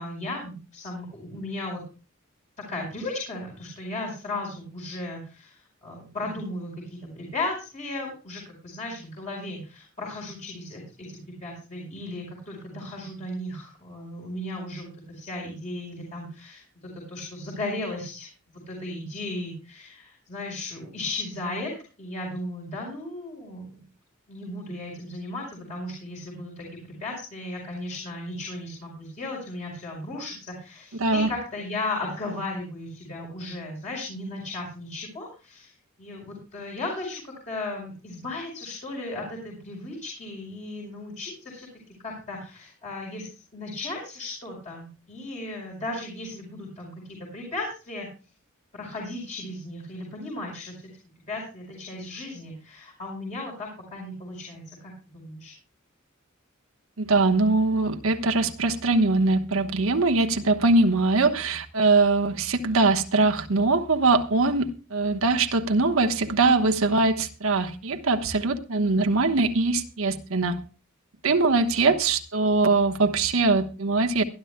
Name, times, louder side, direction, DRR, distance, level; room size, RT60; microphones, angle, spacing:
voice 1, 0.0-1.8 2.6-16.6 16.9-23.8 24.3-35.7 36.0-41.7 42.0-48.1 48.7-50.8 51.3-55.5, left 2 dB, 35° left, -2 dB, 4.7 m, -36 dB
voice 2, 57.0-70.6 71.2-74.2, right 3 dB, 80° right, 4 dB, 1.1 m, -22 dB
22.5 x 11.5 x 2.2 m, 0.34 s
head